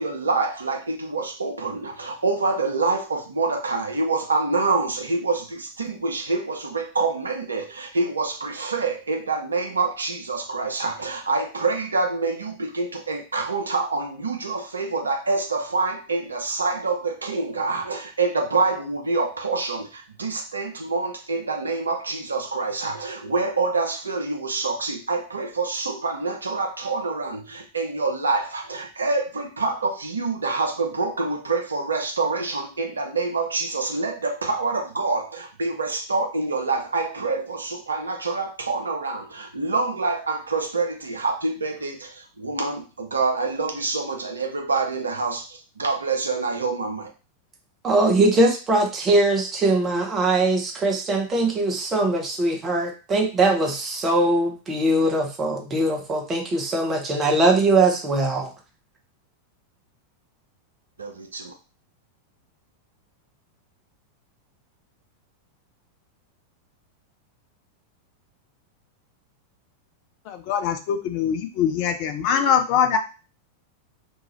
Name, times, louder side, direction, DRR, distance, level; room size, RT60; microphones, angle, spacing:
voice 1, 0.0-47.1 61.0-61.5, right 3 dB, 75° right, 0.6 m, -26 dB
voice 2, 47.8-58.5, right 2 dB, 25° right, 0.8 m, -21 dB
voice 3, 70.3-73.0, left 8 dB, 45° left, 0.5 m, -23 dB
2.7 x 2.4 x 3.0 m
figure-of-eight pair, 90°, 0 cm